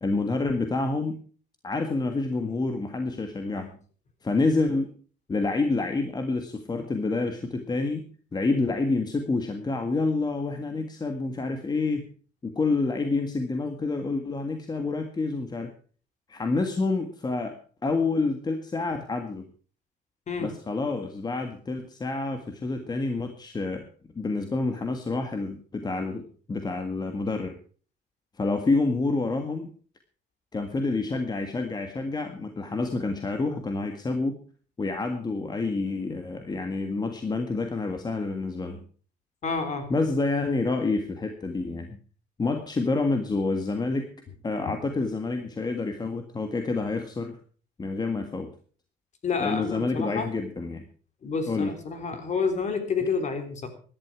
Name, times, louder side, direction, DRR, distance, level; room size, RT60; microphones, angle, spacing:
voice 1, 0.0-1.2 1.6-3.7 4.2-4.9 5.3-8.1 8.3-12.1 12.4-15.7 16.3-19.5 20.4-23.9 24.1-27.6 28.4-29.7 30.5-34.4 34.8-38.8 39.9-42.0 42.4-44.1 44.4-47.4 47.8-48.5 49.4-50.9 51.5-51.7, left 3 dB, 25° left, 6 dB, 1.7 m, -28 dB
voice 2, 39.4-39.9 49.2-50.3 51.2-53.7, left 5 dB, 45° left, 8 dB, 3.5 m, -29 dB
16.0 x 11.5 x 4.8 m, 0.41 s
cardioid pair, 110°, 17 cm